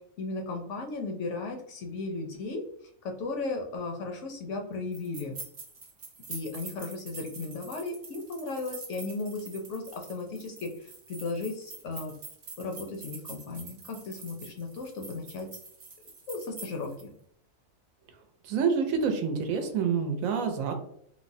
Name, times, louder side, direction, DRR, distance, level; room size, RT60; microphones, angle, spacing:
voice 1, 0.2-2.6 3.0-5.4 6.3-12.1 12.6-15.5 16.3-17.1, left 3 dB, 70° left, 3 dB, 0.8 m, -35 dB
sound 1, 4.9-17.0, right 4 dB, 55° right, 0.9 m, -46 dB
voice 2, 18.4-20.7, right 6 dB, 80° right, 5 dB, 1.0 m, -27 dB
3.3 x 2.0 x 2.5 m, 0.67 s
omnidirectional pair, 1.4 m